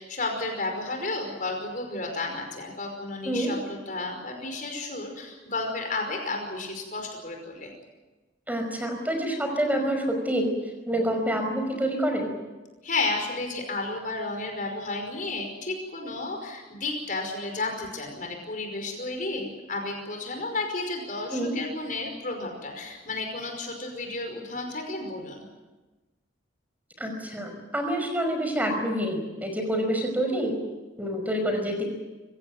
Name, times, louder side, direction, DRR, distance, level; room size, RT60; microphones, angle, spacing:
voice 1, 0.0-7.7 12.8-25.4, left 2 dB, 45° left, 3 dB, 5.3 m, -32 dB
voice 2, 8.5-10.5 10.9-12.3 21.3-21.5 27.0-30.6 31.0-31.8, right 1 dB, 10° right, 4 dB, 5.3 m, -27 dB
25.0 x 16.5 x 9.2 m, 1.2 s
head